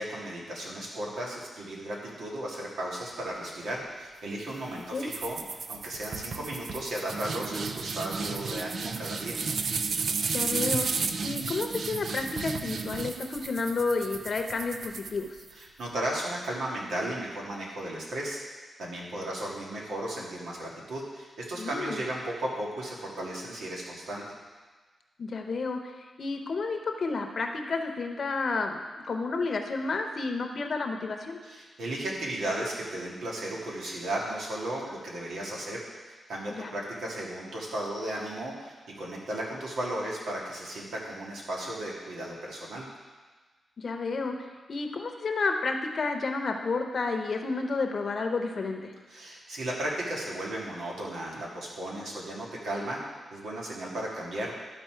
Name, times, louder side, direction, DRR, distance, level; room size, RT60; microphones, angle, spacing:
voice 1, 0.0-9.4 15.5-18.4 18.8-24.2 31.4-35.8 36.1-42.9 49.1-53.0 53.3-54.5, right 1 dB, 85° right, -3 dB, 1.9 m, -35 dB
sound 1, 5.1-15.6, right 4 dB, 65° right, 0.5 m, -33 dB
voice 2, 10.3-15.3 21.6-22.0 25.2-25.9 26.2-31.4 36.5-36.7 43.8-48.9, left 3 dB, 55° left, 4 dB, 0.8 m, -31 dB
12.0 x 4.2 x 4.5 m, 1.3 s
cardioid pair, 85°, 0 cm